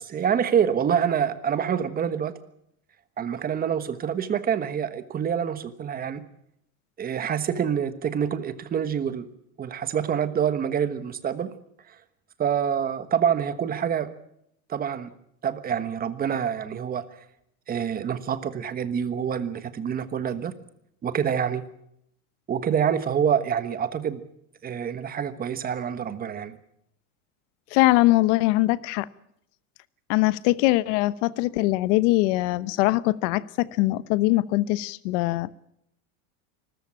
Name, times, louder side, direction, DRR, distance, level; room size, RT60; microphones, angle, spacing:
voice 1, 0.0-2.3 3.2-6.2 7.0-9.3 9.6-11.5 12.4-14.1 14.7-15.1 15.4-17.0 17.7-20.5 21.0-21.6 22.5-24.2 24.6-26.6, right 8 dB, 20° right, 12 dB, 1.3 m, -26 dB
voice 2, 27.7-29.1 30.1-35.5, left 19 dB, 60° left, 18 dB, 1.0 m, -22 dB
25.0 x 14.5 x 8.7 m, 0.75 s
supercardioid pair, 155°, 43 cm